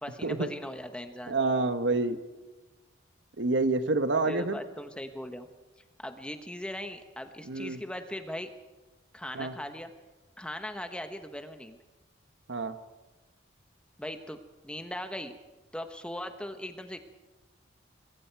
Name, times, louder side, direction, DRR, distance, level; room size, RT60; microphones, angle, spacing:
voice 1, 0.0-1.4 4.2-5.5 6.0-8.5 9.1-9.9 10.4-11.8 14.0-15.4 15.7-17.0, left 1 dB, 5° left, 7 dB, 1.1 m, -39 dB
voice 2, 1.3-2.2 3.4-4.6 7.5-7.8 9.3-9.5 12.5-12.7, right 3 dB, 70° right, 10 dB, 1.2 m, -27 dB
27.0 x 21.5 x 4.7 m, 1.2 s
head